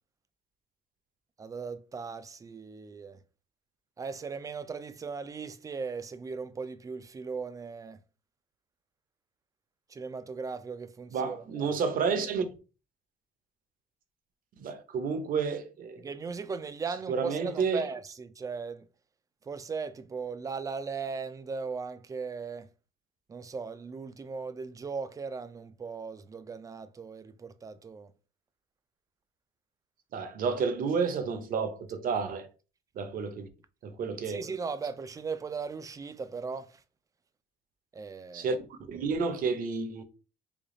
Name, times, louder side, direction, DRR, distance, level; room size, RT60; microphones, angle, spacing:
voice 1, 1.4-3.2 4.0-8.0 9.9-11.7 16.0-18.9 19.4-22.7 23.3-28.1 34.3-36.8 37.9-38.5, right 5 dB, 20° right, 0.3 m, -38 dB
voice 2, 11.1-12.5 14.6-16.0 17.1-17.8 30.1-32.5 32.9-33.5 33.8-34.4 38.3-40.0, right 5 dB, 55° right, 0.7 m, -30 dB
3.4 x 2.3 x 3.8 m
cardioid pair, 110°, 17 cm